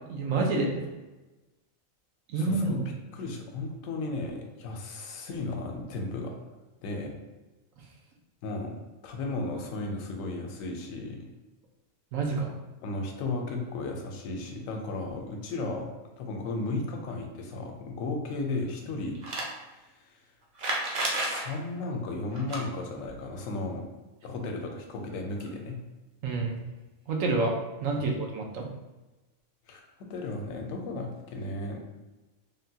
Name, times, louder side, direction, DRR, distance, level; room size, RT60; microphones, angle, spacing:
voice 1, 0.1-0.9 2.3-2.8 12.1-12.5 26.2-26.6 27.1-28.7, right 3 dB, 80° right, 1 dB, 1.0 m, -28 dB
voice 2, 2.4-6.3 6.8-7.1 8.4-8.7 9.0-11.3 12.8-15.9 16.2-19.2 19.7-19.9 20.9-23.8 24.2-25.8 29.7-31.8, left 2 dB, 80° left, 2 dB, 1.0 m, -35 dB
sound 1, 19.1-19.5 20.5-21.4 22.3-22.6 25.1-25.2 25.4-25.5 26.6-26.7, right 2 dB, 55° right, 0.5 m, -31 dB
3.5 x 2.2 x 2.7 m, 1.1 s
omnidirectional pair, 1.4 m